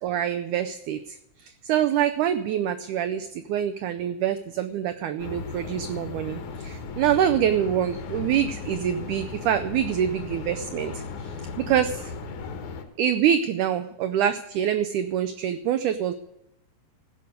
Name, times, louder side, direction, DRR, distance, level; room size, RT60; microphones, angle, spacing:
voice 1, 0.0-12.1 13.0-16.1, right 9 dB, 85° right, 9 dB, 1.7 m, -25 dB
sound 1, 5.2-12.9, left 4 dB, 65° left, 2.3 m, -36 dB
15.5 x 5.2 x 8.1 m, 0.83 s
omnidirectional pair, 4.3 m